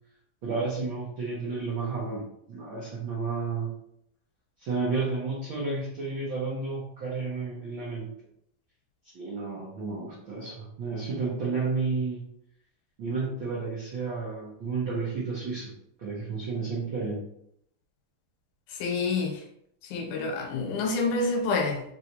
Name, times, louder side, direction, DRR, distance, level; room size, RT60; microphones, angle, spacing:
voice 1, 0.4-2.2 2.5-3.7 4.6-8.1 9.1-12.2 13.0-15.7 16.0-17.2, right 4 dB, 70° right, -7 dB, 1.1 m, -31 dB
voice 2, 18.7-19.4 19.9-21.8, left 3 dB, 80° left, 1 dB, 2.2 m, -28 dB
4.7 x 3.1 x 2.7 m, 0.73 s
omnidirectional pair, 3.6 m